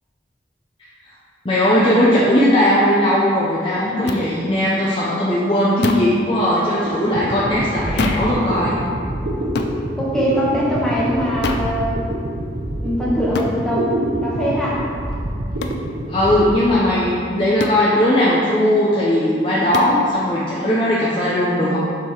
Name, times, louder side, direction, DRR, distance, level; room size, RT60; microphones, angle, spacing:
voice 1, 1.4-8.8 16.1-21.8, left 1 dB, 30° left, -7 dB, 0.6 m, -18 dB
sound 1, 4.1-4.2 5.8-6.2 8.0-8.3 9.5-9.8 11.4-11.7 13.3-13.6 15.6-15.8 17.6-17.9 19.7-20.0, left 3 dB, 75° left, 0.4 m, -25 dB
sound 2, 6.9-17.3, right 1 dB, 75° right, 0.7 m, -26 dB
voice 2, 10.0-12.0 12.8-14.9, equal, 5° left, -7 dB, 1.1 m, -22 dB
6.7 x 3.7 x 4.7 m, 2.3 s
head